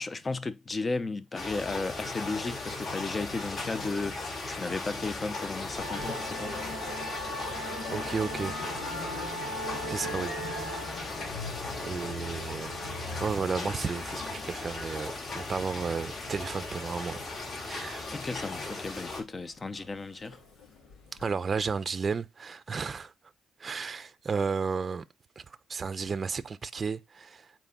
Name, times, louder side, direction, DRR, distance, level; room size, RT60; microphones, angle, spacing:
voice 1, 0.0-6.5 9.7-9.9 18.1-20.4, left 3 dB, 30° left, 0.9 m, -34 dB
sound 1, 1.3-19.2, left 3 dB, 55° left, 4.1 m, -37 dB
Musical instrument, 5.8-21.3, left 1 dB, 85° left, 2.5 m, -40 dB
voice 2, 7.9-8.5 9.5-10.3 11.8-12.7 13.2-17.2 17.6-18.1 21.2-23.1 23.6-25.0 25.4-25.5 25.7-27.5, right 5 dB, 40° right, 0.6 m, -33 dB
8.2 x 4.4 x 5.4 m
cardioid pair, 90°, 0 cm